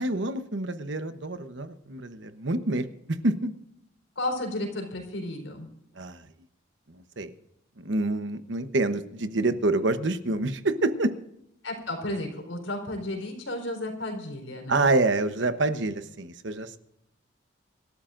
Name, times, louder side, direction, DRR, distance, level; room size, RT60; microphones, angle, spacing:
voice 1, 0.0-2.9 3.2-3.5 6.0-6.2 7.2-7.3 7.8-11.1 14.7-16.8, right 2 dB, 65° right, 10 dB, 1.0 m, -27 dB
voice 2, 4.2-5.7 11.6-14.8, left 1 dB, 75° left, 3 dB, 4.4 m, -33 dB
25.5 x 13.0 x 2.6 m, 0.78 s
head